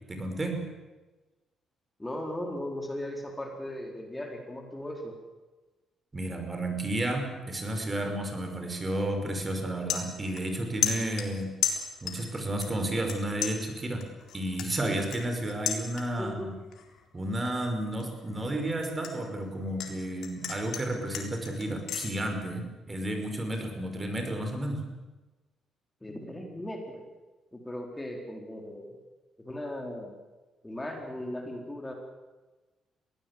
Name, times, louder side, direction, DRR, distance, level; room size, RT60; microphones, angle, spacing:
voice 1, 0.1-0.6 6.1-11.6 12.0-14.0 14.3-16.5 17.1-24.8, right 1 dB, 25° right, 5 dB, 5.5 m, -32 dB
voice 2, 2.0-5.1 16.2-16.5 26.0-27.0 27.5-29.0 29.4-30.1 30.6-31.9, left 1 dB, 15° left, 2 dB, 4.0 m, -37 dB
sound 1, 9.0-9.2 9.5-10.6 10.8-12.3 12.6-13.2 13.4-16.3 16.7-17.1 17.5-19.9 20.2-22.1, left 8 dB, 75° left, 3.8 m, -34 dB
22.5 x 17.5 x 8.6 m, 1.2 s
cardioid pair, 90°, 0 cm